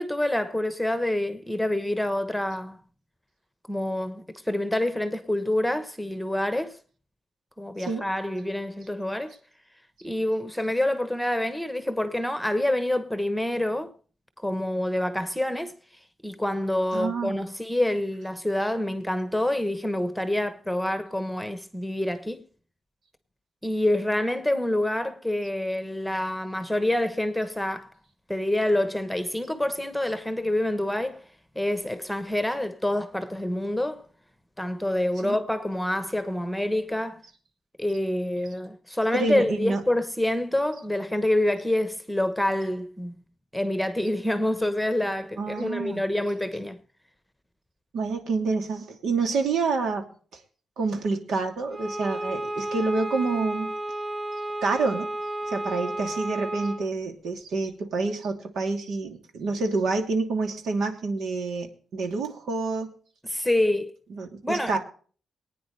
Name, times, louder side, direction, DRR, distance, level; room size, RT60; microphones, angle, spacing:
voice 1, 0.0-2.8 3.7-6.8 7.6-9.4 10.0-13.9 14.4-15.7 16.2-22.4 23.6-27.9 28.3-31.2 31.5-34.0 34.6-37.2 37.8-43.1 43.5-46.8 63.2-64.0 64.4-64.8, left 1 dB, ahead, 1.1 m, -27 dB
voice 2, 16.9-17.4 35.2-35.4 39.1-39.8 45.4-46.0 47.9-50.0 50.8-53.7 54.6-55.1 55.5-62.9 64.1-64.8, right 3 dB, 85° right, 2.8 m, -28 dB
Bowed string instrument, 51.7-56.9, right 1 dB, 20° right, 3.6 m, -32 dB
23.5 x 9.5 x 3.3 m
wide cardioid pair, 145°, 0 cm